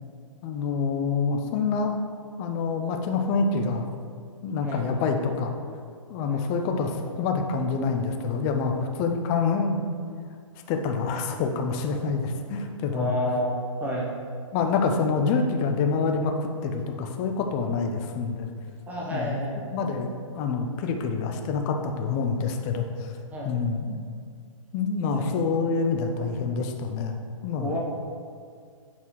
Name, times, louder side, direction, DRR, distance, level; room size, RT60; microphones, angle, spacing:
voice 1, 0.4-2.0 2.4-3.9 4.4-5.5 6.1-9.8 10.7-13.2 14.5-18.5 19.1-19.4 19.7-23.2 23.4-24.0 24.7-27.2 27.4-27.7, left 4 dB, 25° left, 4 dB, 0.4 m, -26 dB
voice 2, 12.9-14.1 18.9-19.6 23.3-23.6 25.2-25.3 27.6-27.8, equal, 10° right, -3 dB, 0.8 m, -30 dB
7.6 x 4.1 x 3.0 m, 2.1 s
hypercardioid pair, 130°, 18 cm